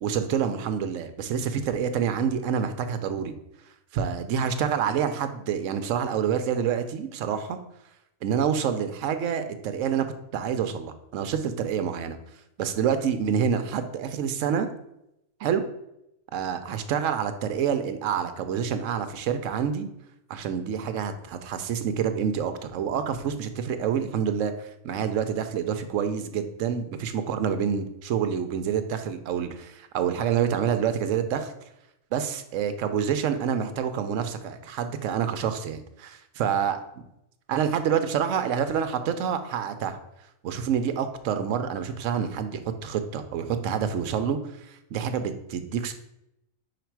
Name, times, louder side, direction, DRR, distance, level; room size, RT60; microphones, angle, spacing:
voice 1, 0.0-3.3 3.9-7.6 8.2-10.1 10.3-12.2 12.6-14.7 15.4-15.6 16.3-19.9 20.3-31.5 32.1-36.8 37.5-40.0 40.4-44.4 44.6-45.9, right 8 dB, 70° right, 9 dB, 1.0 m, -27 dB
5.0 x 5.0 x 4.6 m, 0.83 s
omnidirectional pair, 1.4 m